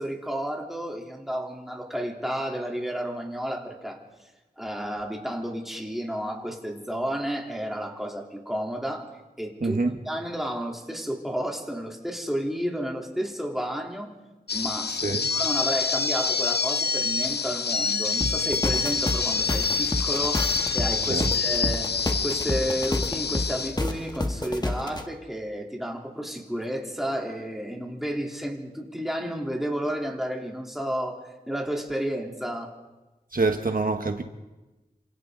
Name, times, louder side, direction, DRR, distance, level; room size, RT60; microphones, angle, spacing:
voice 1, 0.0-4.0 4.6-9.1 9.4-9.8 10.1-14.1 14.5-14.9 15.3-21.9 22.2-31.2 31.5-32.7, equal, ahead, 3.6 m, -31 dB
voice 2, 9.6-9.9 14.9-15.3 21.1-21.2 33.3-34.2, right 3 dB, 60° right, 1.4 m, -25 dB
sound 1, 14.5-23.9, left 5 dB, 85° left, 0.7 m, -27 dB
sound 2, 18.2-25.0, left 1 dB, 25° left, 1.8 m, -29 dB
28.0 x 26.5 x 4.0 m
wide cardioid pair, 60°, 16 cm